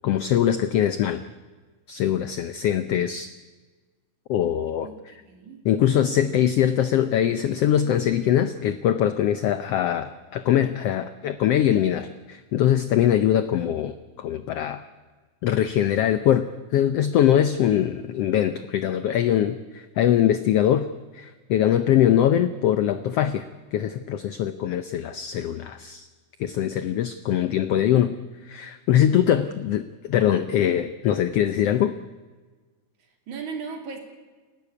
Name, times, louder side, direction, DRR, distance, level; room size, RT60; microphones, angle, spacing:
voice 1, 0.0-1.2 1.9-3.3 4.3-4.9 5.6-14.8 15.4-20.9 21.1-23.4 23.7-26.1 26.4-28.1 28.5-31.9, left 10 dB, 90° left, 11 dB, 1.3 m, -22 dB
voice 2, 4.8-5.7 29.7-29.8 33.3-34.0, right 5 dB, 65° right, 4 dB, 4.0 m, -37 dB
29.5 x 12.0 x 8.5 m, 1.4 s
omnidirectional pair, 3.7 m